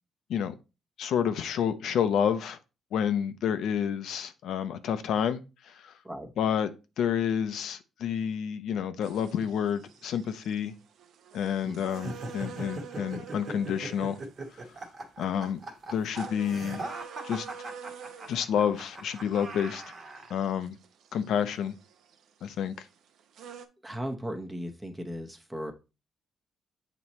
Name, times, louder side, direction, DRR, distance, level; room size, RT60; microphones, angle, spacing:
voice 1, 1.0-2.6 2.9-5.9 6.4-6.7 7.0-10.7 11.3-14.2 15.2-15.6 15.9-16.9 17.2-17.5 18.3-19.8 20.3-20.8 21.1-21.7 22.4-22.8, left 8 dB, 75° left, 0.6 m, -29 dB
sound 1, 9.0-23.7, right 7 dB, 75° right, 0.7 m, -48 dB
sound 2, 11.9-20.4, right 2 dB, 35° right, 1.2 m, -40 dB
voice 2, 23.8-25.7, equal, 10° right, 0.9 m, -36 dB
7.9 x 3.0 x 4.2 m
cardioid pair, 125°, 0 cm